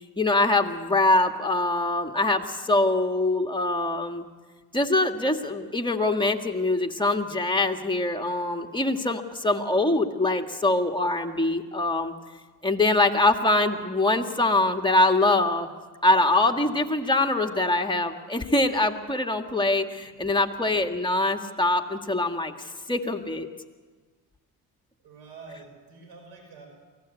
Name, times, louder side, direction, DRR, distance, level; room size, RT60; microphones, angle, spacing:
voice 1, 0.2-4.2 4.7-12.1 12.6-15.7 16.0-22.5 22.9-23.5, left 2 dB, 10° left, 5 dB, 2.0 m, -23 dB
voice 2, 25.0-26.7, right 4 dB, 90° right, 4 dB, 6.1 m, -46 dB
23.5 x 17.0 x 8.4 m, 1.4 s
supercardioid pair, 75°, 37 cm